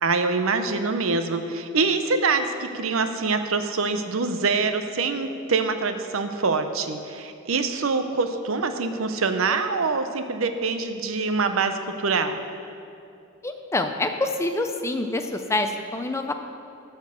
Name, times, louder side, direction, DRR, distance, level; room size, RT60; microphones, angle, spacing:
voice 1, 0.0-12.4, right 4 dB, 70° right, 8 dB, 0.7 m, -25 dB
voice 2, 13.4-16.3, left 2 dB, 15° left, 6 dB, 0.6 m, -26 dB
13.0 x 4.5 x 6.9 m, 2.5 s
head